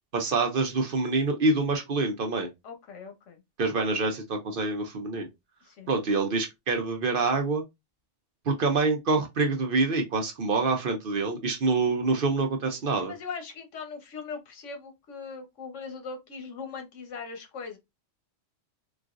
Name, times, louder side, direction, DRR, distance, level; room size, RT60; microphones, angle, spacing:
voice 1, 0.1-2.5 3.6-5.3 5.9-7.6 8.5-13.1, right 3 dB, 55° right, 0.8 m, -26 dB
voice 2, 2.6-3.4 5.6-5.9 12.9-17.8, left 5 dB, 80° left, 1.2 m, -40 dB
3.9 x 2.4 x 2.4 m
omnidirectional pair, 1.2 m